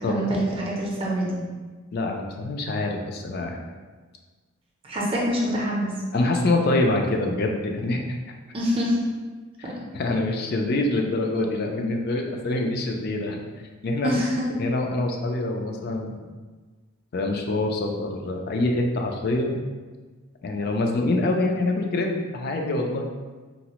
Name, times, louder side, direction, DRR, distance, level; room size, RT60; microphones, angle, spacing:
voice 1, 0.0-1.4 4.8-5.9 8.5-9.0 9.6-9.7 14.0-14.5, equal, 30° right, -4 dB, 0.5 m, -25 dB
voice 2, 1.9-3.6 6.1-8.0 9.9-13.4 13.8-14.1 14.6-16.2 17.1-19.6 20.4-23.1, left 2 dB, 50° left, 2 dB, 0.4 m, -25 dB
3.9 x 2.0 x 2.9 m, 1.4 s
head